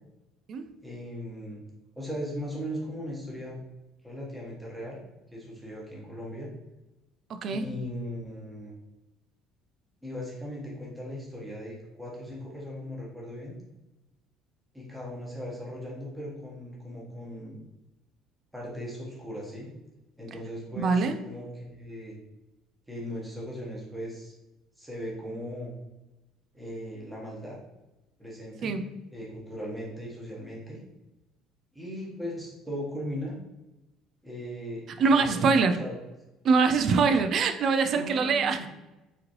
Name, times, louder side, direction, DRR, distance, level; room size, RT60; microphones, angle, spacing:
voice 1, 0.8-1.6 2.0-3.6 4.0-5.0 5.3-6.5 7.5-8.7 10.0-13.6 14.7-17.6 18.5-19.7 20.2-22.2 22.9-24.3 24.8-25.7 26.5-27.6 28.2-28.8 29.1-30.8 31.7-33.4 34.2-35.9 37.9-38.7, equal, 5° right, -4 dB, 1.3 m, -38 dB
voice 2, 7.3-7.7 20.8-21.2 28.6-28.9 35.0-35.8 36.4-38.7, right 4 dB, 45° right, 9 dB, 0.4 m, -23 dB
4.9 x 2.9 x 3.1 m, 1.0 s
cardioid pair, 145°, 0 cm